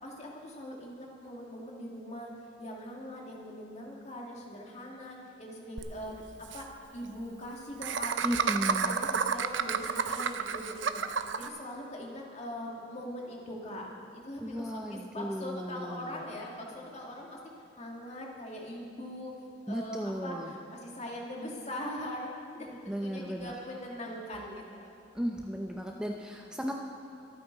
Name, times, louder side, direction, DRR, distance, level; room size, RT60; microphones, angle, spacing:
voice 1, 0.0-2.3 2.6-6.2 6.5-11.0 11.4-13.9 14.1-17.4 17.8-19.4 19.7-24.9, equal, 35° left, -1 dB, 2.2 m, -41 dB
Laughter, 5.8-5.9 6.1-6.2 6.4-6.6 7.8-11.5, right 6 dB, 75° right, 0.7 m, -30 dB
voice 2, 8.2-9.0 14.4-16.2 19.7-20.5 22.9-23.5 25.1-26.7, equal, 5° right, 1 dB, 0.6 m, -35 dB
24.0 x 9.3 x 4.0 m, 2.8 s
head